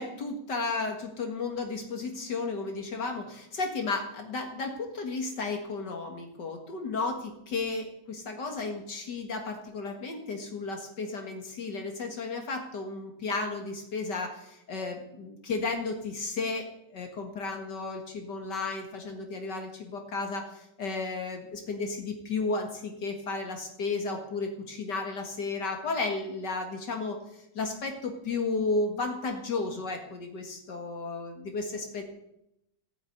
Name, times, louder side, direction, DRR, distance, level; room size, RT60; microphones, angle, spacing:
voice 1, 0.0-7.2 7.5-32.0, left 3 dB, 65° left, 4 dB, 2.4 m, -33 dB
16.0 x 8.7 x 9.4 m, 0.83 s
omnidirectional pair, 2.0 m